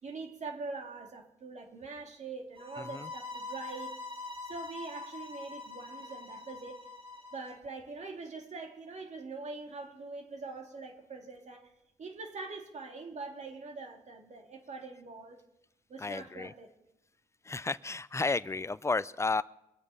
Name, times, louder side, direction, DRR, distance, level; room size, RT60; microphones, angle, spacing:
voice 1, 0.0-3.9 4.4-6.8 7.3-11.7 12.0-15.4 15.9-16.7, right 3 dB, 55° right, 3 dB, 2.5 m, -43 dB
sound 1, 2.6-7.6, left 3 dB, 35° right, 3.6 m, -44 dB
voice 2, 2.8-3.1 16.0-16.5 17.4-19.4, left 3 dB, 20° left, 18 dB, 0.5 m, -32 dB
23.0 x 7.8 x 5.6 m, 0.89 s
cardioid pair, 70°, 14 cm